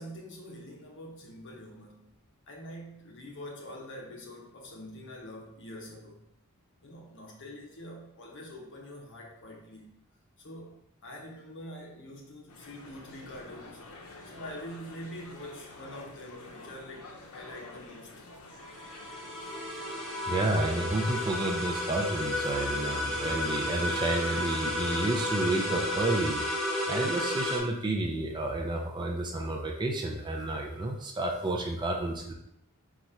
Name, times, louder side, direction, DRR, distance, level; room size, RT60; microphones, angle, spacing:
voice 1, 0.0-2.1 2.5-6.3 6.8-9.9 10.4-13.8 14.2-18.2, left 1 dB, 55° left, -1 dB, 0.9 m, -45 dB
sound 1, 12.5-26.1, left 2 dB, 80° left, 0.7 m, -48 dB
sound 2, 18.5-27.6, left 1 dB, ahead, 0.8 m, -32 dB
voice 2, 20.3-26.4 26.9-32.3, right 2 dB, 20° right, 1 dB, 0.4 m, -30 dB
4.1 x 2.4 x 4.4 m, 0.77 s
head